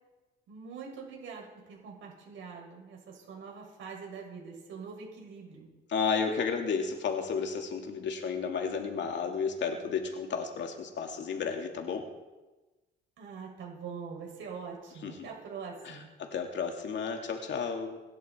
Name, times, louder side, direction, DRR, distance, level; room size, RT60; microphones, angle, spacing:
voice 1, 0.5-5.7 13.2-16.1, right 5 dB, 75° right, -1 dB, 6.9 m, -44 dB
voice 2, 5.9-12.1 15.0-15.3 15.8-18.0, left 5 dB, 65° left, 3 dB, 2.7 m, -32 dB
25.0 x 11.0 x 4.6 m, 1.1 s
cardioid pair, 90°, 20 cm